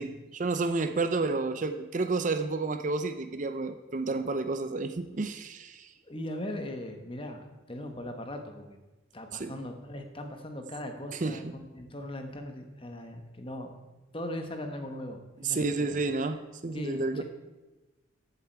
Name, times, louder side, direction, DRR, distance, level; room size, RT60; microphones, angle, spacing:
voice 1, 0.0-5.9 9.3-9.5 11.1-11.5 15.4-17.2, right 3 dB, 40° right, 9 dB, 0.5 m, -31 dB
voice 2, 6.0-8.8 9.1-13.8 14.1-16.0 16.7-17.2, left 1 dB, 25° left, 5 dB, 1.2 m, -39 dB
14.0 x 8.3 x 4.6 m, 1.1 s
head